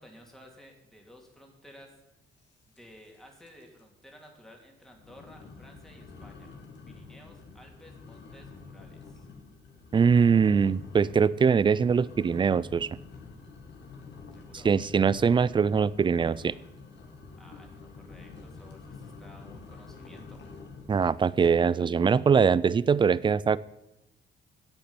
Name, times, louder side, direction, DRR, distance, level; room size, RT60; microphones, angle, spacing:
voice 1, 0.0-2.0 2.7-6.6 6.9-9.3 14.3-14.7 17.4-20.4, equal, ahead, 1 dB, 2.4 m, -54 dB
sound 1, 2.8-3.2 3.4-3.8 4.2-4.3 4.9-21.1, left 4 dB, 60° left, 2.0 m, -47 dB
voice 2, 9.9-12.9 14.6-16.5 20.9-23.6, right 6 dB, 25° right, 20 dB, 0.3 m, -22 dB
8.8 x 8.0 x 7.0 m, 0.91 s
cardioid pair, 90°, 20 cm